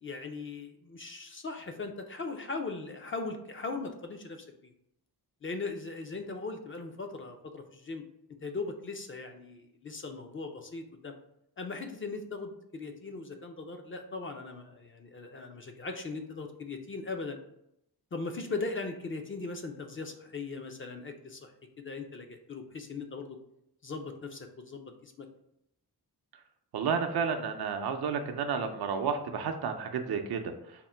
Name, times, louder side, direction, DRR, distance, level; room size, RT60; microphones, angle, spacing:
voice 1, 0.0-4.7 5.4-8.0 8.4-11.1 11.6-17.4 18.1-21.5 21.8-23.4 23.8-25.3, left 3 dB, 35° left, 5 dB, 0.4 m, -39 dB
voice 2, 26.7-30.5, right 6 dB, 75° right, 6 dB, 0.6 m, -31 dB
3.6 x 2.1 x 4.3 m, 0.79 s
cardioid pair, 90°, 39 cm